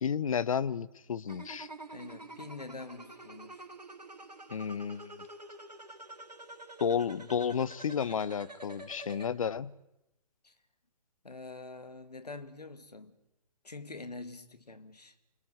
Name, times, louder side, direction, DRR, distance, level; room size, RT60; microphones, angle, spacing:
voice 1, 0.0-1.7 4.5-5.2 6.8-9.7, left 7 dB, 55° left, 1.1 m, -32 dB
sound 1, 1.3-9.3, right 2 dB, 80° right, 3.9 m, -48 dB
voice 2, 1.9-3.7 10.4-10.5 11.2-13.2 13.6-15.2, left 3 dB, 75° left, 2.4 m, -45 dB
28.5 x 21.0 x 8.1 m
figure-of-eight pair, 125°, 21 cm